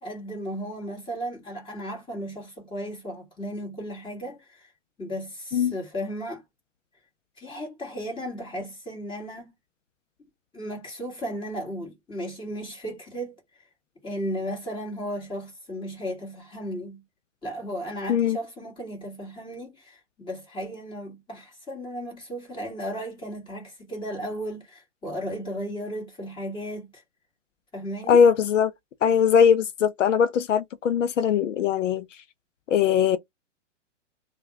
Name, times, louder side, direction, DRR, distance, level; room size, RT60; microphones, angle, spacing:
voice 1, 0.0-4.7 5.0-6.4 7.4-9.5 10.5-13.4 14.0-17.0 17.4-27.0 27.7-28.2, equal, 15° left, 2.1 m, -35 dB
voice 2, 28.1-28.7 29.0-32.1 32.7-33.2, left 7 dB, 80° left, 0.7 m, -20 dB
3.4 x 2.4 x 3.2 m
hypercardioid pair, 135°, 37 cm